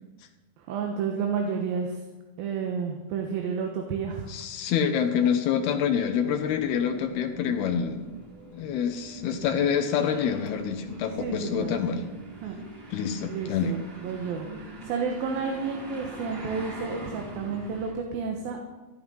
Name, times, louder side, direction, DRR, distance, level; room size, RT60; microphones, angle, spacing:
voice 1, 0.6-2.0 2.4-4.3 11.2-11.9 12.4-12.6 12.8-12.9 13.3-18.8, right 5 dB, 70° right, 2 dB, 3.0 m, -31 dB
voice 2, 4.3-8.1 8.5-12.0 12.9-13.7, left 7 dB, 80° left, 5 dB, 2.9 m, -26 dB
sound 1, 6.1-17.9, right 2 dB, 30° right, 3.5 m, -44 dB
15.5 x 11.5 x 5.6 m, 1.1 s
omnidirectional pair, 4.5 m